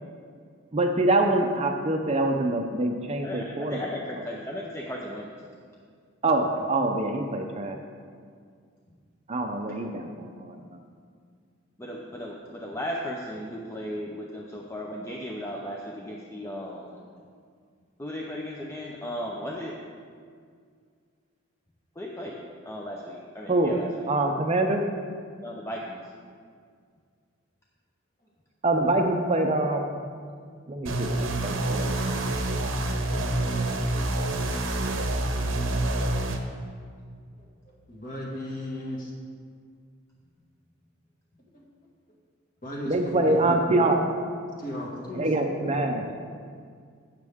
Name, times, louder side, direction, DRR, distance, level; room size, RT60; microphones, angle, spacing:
voice 1, 0.7-3.8 6.2-7.8 9.3-10.8 23.5-23.8 24.1-24.8 28.6-30.0 30.7-32.2 42.9-44.0 45.2-46.0, right 2 dB, 30° right, 4 dB, 0.6 m, -25 dB
voice 2, 3.2-5.3 11.8-17.0 18.0-19.8 22.0-23.9 25.4-26.0, equal, 15° left, -2 dB, 0.7 m, -36 dB
sound 1, 30.9-36.4, right 1 dB, 70° right, 0.9 m, -27 dB
voice 3, 37.4-39.1 41.5-41.7 42.6-43.4 44.6-45.3 45.7-45.9, left 1 dB, 40° left, -3 dB, 2.0 m, -36 dB
16.0 x 6.6 x 3.6 m, 2.1 s
head